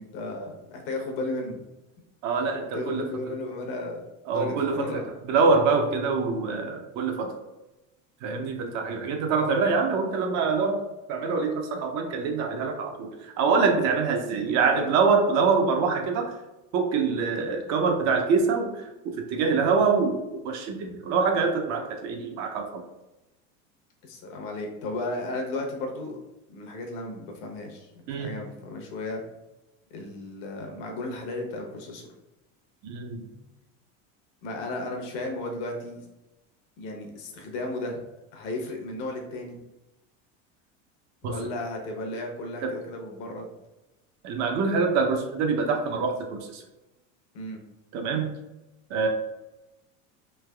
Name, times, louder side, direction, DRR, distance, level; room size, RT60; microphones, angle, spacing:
voice 1, 0.0-1.6 2.7-5.0 14.4-14.9 19.4-19.6 24.0-26.2 26.5-27.9 28.1-29.2 29.9-32.1 34.4-36.0 36.8-38.0 38.3-39.5 41.2-43.5 47.3-47.6, left 2 dB, 60° left, 2 dB, 0.8 m, -34 dB
voice 2, 2.2-3.2 4.3-5.0 5.3-7.3 8.2-10.8 11.1-16.3 16.7-22.8 28.1-28.3 32.8-33.3 41.2-41.4 42.6-42.7 44.2-46.6 47.9-48.3 48.9-49.1, right 4 dB, 45° right, 4 dB, 0.5 m, -25 dB
3.3 x 2.9 x 2.2 m, 0.98 s
supercardioid pair, 125°, 38 cm